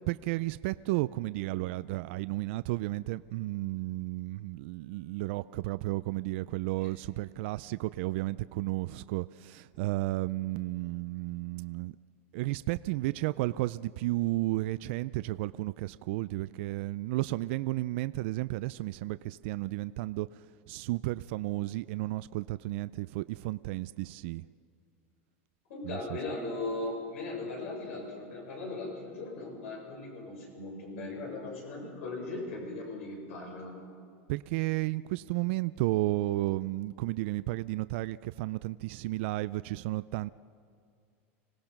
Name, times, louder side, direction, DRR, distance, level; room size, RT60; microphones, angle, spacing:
voice 1, 0.1-12.0 12.3-24.4 25.8-26.2 34.3-40.3, right 19 dB, 60° right, 15 dB, 0.4 m, -33 dB
voice 2, 25.7-33.8, left 2 dB, 85° left, -1 dB, 7.0 m, -38 dB
26.0 x 17.5 x 6.0 m, 2.3 s
supercardioid pair, 150°, 7 cm